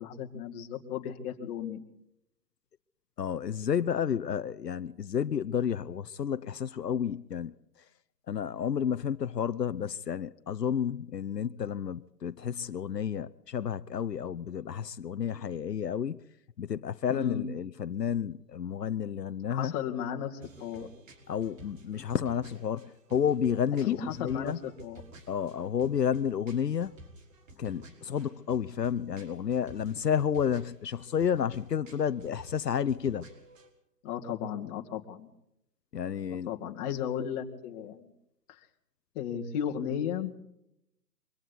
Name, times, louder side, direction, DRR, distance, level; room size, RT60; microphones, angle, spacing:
voice 1, 0.0-1.8 17.1-17.4 19.5-20.9 23.8-25.0 34.0-35.3 36.3-38.1 38.5-38.7 39.1-40.3, left 9 dB, 25° left, 2.3 m, -35 dB
voice 2, 3.2-7.5 8.3-16.2 16.6-19.7 21.3-24.6 25.3-27.0 27.6-33.3 35.9-36.5, left 8 dB, 80° left, 0.9 m, -31 dB
sound 1, 20.4-33.7, right 1 dB, 50° right, 5.0 m, -53 dB
26.0 x 24.0 x 4.1 m
hypercardioid pair, 140°, 48 cm